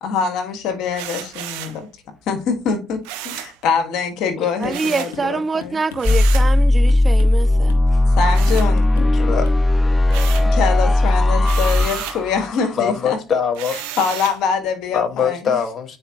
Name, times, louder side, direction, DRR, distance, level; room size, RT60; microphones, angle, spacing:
voice 1, 0.0-1.5 2.3-5.8 8.2-8.9 10.4-13.2 14.0-15.6, left 5 dB, 65° left, 1.8 m, -24 dB
sound 1, 0.9-1.8 3.0-3.6 4.7-5.2 6.0-6.5 8.3-9.2 9.6-10.6 11.4-12.2 13.5-14.4, right 12 dB, 75° right, 1.0 m, -32 dB
sound 2, 4.6-4.9 5.1-5.3 5.6-6.6 6.9-7.4 7.7-7.9 8.2-8.7 9.0-9.2 9.4-9.6, left 7 dB, 85° left, 1.3 m, -39 dB
voice 2, 4.6-7.7, right 4 dB, 30° right, 0.3 m, -25 dB
sound 3, 6.0-13.0, left 2 dB, 20° left, 0.6 m, -16 dB
voice 3, 9.0-9.5 12.8-13.8 14.9-16.0, left 7 dB, 40° left, 1.7 m, -22 dB
8.8 x 4.8 x 3.0 m
hypercardioid pair, 70°, 0 cm